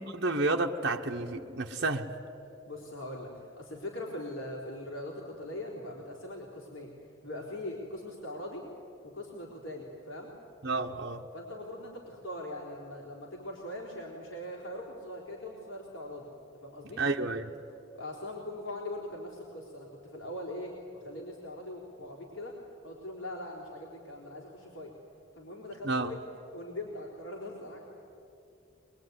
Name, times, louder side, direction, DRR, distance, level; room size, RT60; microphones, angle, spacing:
voice 1, 0.0-2.1 10.6-11.2 17.0-17.5 25.8-26.1, right 3 dB, 55° right, 1 dB, 1.2 m, -30 dB
voice 2, 2.7-6.9 7.2-8.6 9.0-10.3 11.3-16.3 16.5-17.0 17.9-22.6 22.8-24.9 25.4-26.2 26.5-27.9, left 1 dB, 80° left, -3 dB, 4.1 m, -41 dB
22.5 x 22.5 x 9.7 m, 2.8 s
head